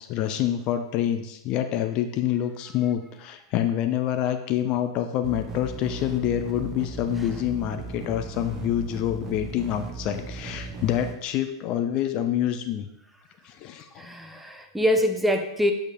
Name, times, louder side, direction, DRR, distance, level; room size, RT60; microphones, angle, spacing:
voice 1, 0.0-12.9 13.4-14.1, left 11 dB, 40° left, 7 dB, 0.8 m, -27 dB
sound 1, 5.2-11.1, right 3 dB, 25° right, 1.3 m, -37 dB
voice 2, 14.0-15.7, equal, 5° right, 5 dB, 1.0 m, -24 dB
9.1 x 5.3 x 5.3 m, 0.80 s
figure-of-eight pair, 100°, 2 cm